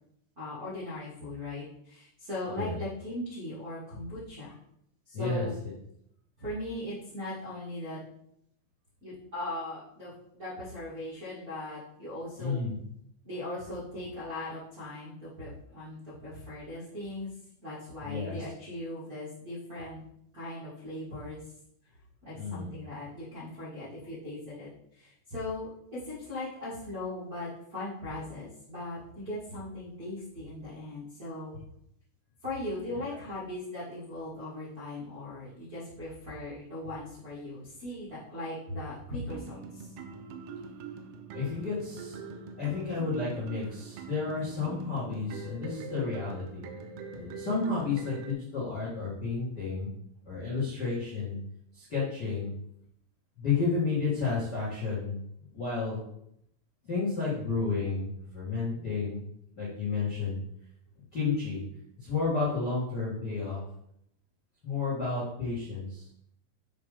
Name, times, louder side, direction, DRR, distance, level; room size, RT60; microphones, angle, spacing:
voice 1, 0.3-4.5 5.0-5.5 6.4-8.0 9.0-12.6 13.2-17.3 17.6-20.0 20.3-21.4 22.2-31.6 32.4-39.9, left 1 dB, 55° right, -11 dB, 0.9 m, -39 dB
voice 2, 5.1-5.5 12.4-12.7 18.0-18.4 22.3-22.7 41.3-42.3 42.6-46.6 47.1-49.9 50.2-51.4 51.7-52.5 53.4-55.1 55.5-56.0 56.8-59.2 59.5-60.4 61.1-61.6 62.0-63.6 64.6-66.1, left 4 dB, 60° left, -7 dB, 1.0 m, -31 dB
sound 1, 39.3-48.3, right 5 dB, 85° right, 2.9 m, -43 dB
8.3 x 3.7 x 5.1 m, 0.75 s
omnidirectional pair, 5.7 m